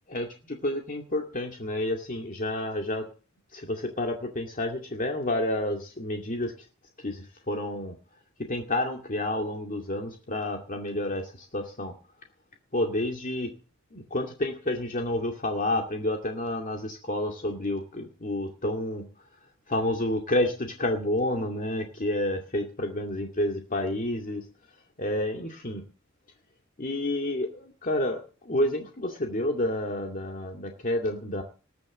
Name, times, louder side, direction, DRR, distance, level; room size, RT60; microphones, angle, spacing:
voice 1, 0.1-3.1 3.5-6.5 7.0-8.0 8.5-11.9 12.7-13.5 13.9-19.0 19.7-24.5 25.0-25.8 26.8-31.4, left 1 dB, 40° left, 2 dB, 2.3 m, -29 dB
20.5 x 6.8 x 7.7 m, 0.36 s
head